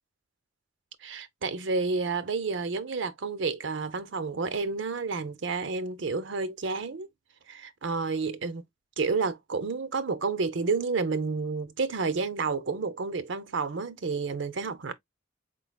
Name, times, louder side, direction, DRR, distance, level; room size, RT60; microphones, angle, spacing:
voice 1, 1.0-7.1 7.5-8.6 9.0-14.9, right 4 dB, 70° right, 0.6 m, -30 dB
4.4 x 3.8 x 2.3 m
head